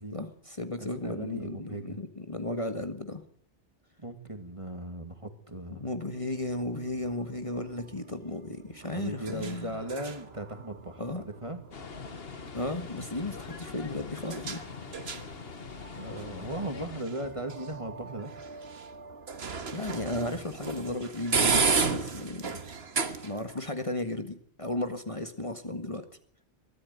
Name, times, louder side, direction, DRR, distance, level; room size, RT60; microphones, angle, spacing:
voice 1, 0.1-3.2 5.7-9.8 11.0-11.2 12.5-14.6 19.7-22.6 23.2-26.1, left 1 dB, 30° left, 7 dB, 1.7 m, -34 dB
voice 2, 0.8-2.0 4.0-5.8 8.9-11.6 15.9-18.3 25.4-25.5, right 1 dB, 30° right, 7 dB, 2.3 m, -38 dB
sound 1, 6.2-23.6, right 5 dB, 70° right, 1.7 m, -35 dB
sound 2, 11.7-17.0, left 5 dB, 65° left, 1.6 m, -43 dB
22.0 x 14.0 x 9.3 m, 0.63 s
omnidirectional pair, 1.1 m